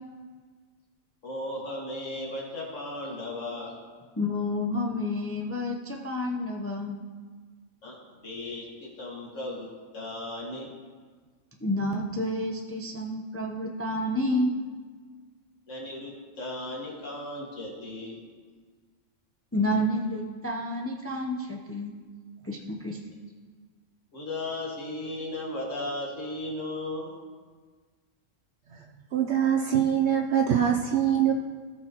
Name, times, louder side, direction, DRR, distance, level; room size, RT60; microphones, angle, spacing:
voice 1, 1.2-3.7 7.8-9.7 9.9-10.7 15.7-18.2 24.1-27.2, left 1 dB, 70° left, -4 dB, 2.4 m, -36 dB
voice 2, 4.2-7.0 11.6-14.5 19.5-22.0 22.4-23.0, left 1 dB, 15° left, 0 dB, 0.6 m, -29 dB
voice 3, 29.1-31.3, right 9 dB, 65° right, 2 dB, 0.9 m, -23 dB
17.0 x 6.0 x 3.0 m, 1.5 s
omnidirectional pair, 1.4 m